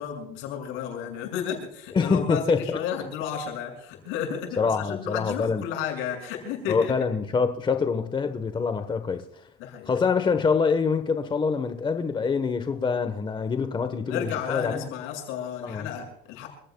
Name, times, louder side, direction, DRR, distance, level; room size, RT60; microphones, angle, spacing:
voice 1, 0.0-6.9 9.6-9.9 14.0-16.5, left 8 dB, 90° left, 2 dB, 6.7 m, -32 dB
voice 2, 1.9-2.8 4.6-5.6 6.7-9.2 9.9-14.9 15.6-15.9, left 5 dB, 25° left, 8 dB, 1.2 m, -25 dB
28.0 x 16.5 x 2.3 m, 0.76 s
cardioid pair, 130°, 20 cm